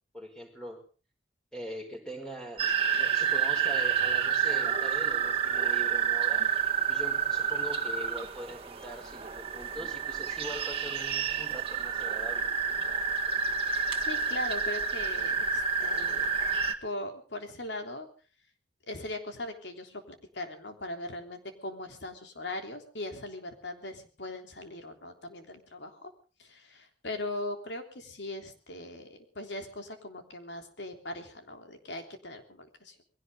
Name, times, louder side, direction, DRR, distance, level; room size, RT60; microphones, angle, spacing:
voice 1, 0.1-0.8 1.5-2.7 2.9-6.5 6.9-12.5, right 1 dB, 5° left, 3 dB, 5.0 m, -42 dB
sound 1, 2.6-16.7, right 7 dB, 35° right, 1.8 m, -29 dB
voice 2, 13.7-16.3 16.8-18.1 18.9-26.1 26.4-33.0, left 2 dB, 75° left, 5 dB, 3.5 m, -40 dB
22.0 x 17.0 x 3.8 m, 0.38 s
head